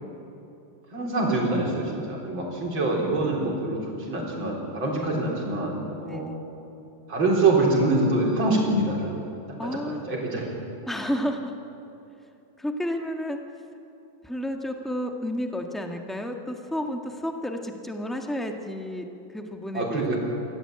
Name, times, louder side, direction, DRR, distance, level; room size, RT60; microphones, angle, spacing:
voice 1, 0.9-6.3 7.1-9.2 9.6-10.5 19.7-20.2, right 2 dB, 70° right, -3 dB, 4.7 m, -25 dB
voice 2, 6.0-6.4 9.6-10.0 10.9-11.5 12.6-13.4 14.2-20.2, equal, ahead, 3 dB, 1.3 m, -31 dB
24.5 x 17.0 x 8.9 m, 2.8 s
omnidirectional pair, 2.2 m